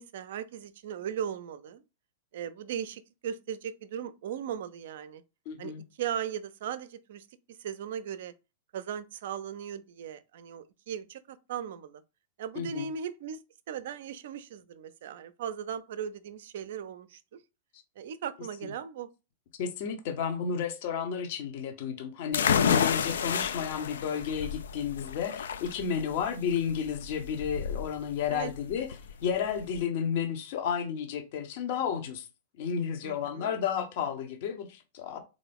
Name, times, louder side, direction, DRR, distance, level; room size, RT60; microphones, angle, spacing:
voice 1, 0.0-1.8 2.3-5.2 5.6-8.3 8.7-12.0 12.4-13.4 13.7-17.4 18.0-19.1 22.7-23.2 28.3-28.5 33.0-33.5, right 8 dB, 60° right, 0.4 m, -38 dB
voice 2, 5.5-5.8 12.6-12.9 18.6-18.7 19.6-28.9 29.2-32.3 32.6-35.2, left 7 dB, 55° left, 0.7 m, -32 dB
sound 1, 22.3-29.8, left 7 dB, 70° left, 0.3 m, -30 dB
3.6 x 2.6 x 3.4 m
figure-of-eight pair, 100°, 0 cm